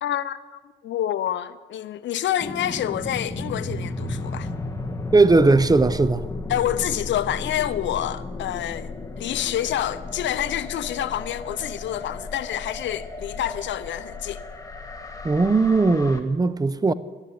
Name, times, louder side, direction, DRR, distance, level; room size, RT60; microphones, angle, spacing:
voice 1, 0.0-4.5 6.5-8.9 9.2-14.4, left 11 dB, 65° left, 0.7 m, -28 dB
sound 1, 2.4-16.2, left 2 dB, 15° left, 1.5 m, -34 dB
voice 2, 5.1-6.2 15.2-16.9, right 3 dB, 20° right, 0.6 m, -18 dB
11.5 x 10.5 x 8.4 m
cardioid pair, 90°, 20 cm